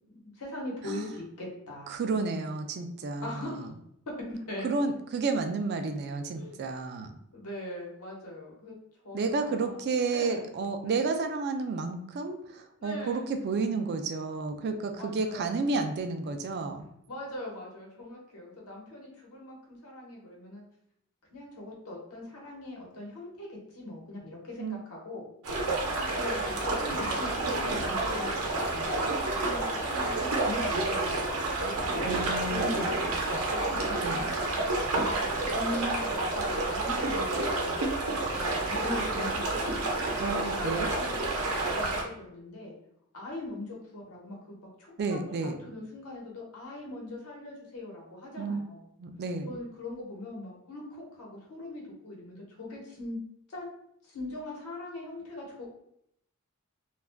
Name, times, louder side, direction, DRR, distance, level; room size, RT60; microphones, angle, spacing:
voice 1, 0.1-2.0 3.2-3.7 4.3-4.7 6.4-6.6 7.3-8.8 9.0-9.8 10.1-10.4 10.8-11.0 12.8-13.4 14.9-15.6 17.1-20.6 21.3-25.3 25.8-34.7 35.2-37.8 38.3-39.9 40.6-42.8 43.1-48.9 49.5-53.2 53.5-53.7 54.0-55.7, left 1 dB, 90° left, -2 dB, 1.0 m, -41 dB
voice 2, 1.9-3.7 4.6-7.2 9.1-16.9 24.6-24.8 32.1-33.0 34.0-34.3 40.2-40.9 45.0-45.6 48.4-48.6 49.0-49.5, right 4 dB, 50° right, 7 dB, 0.3 m, -31 dB
sound 1, 25.4-42.0, right 2 dB, 80° right, 0.6 m, -29 dB
2.3 x 2.1 x 3.3 m, 0.74 s
head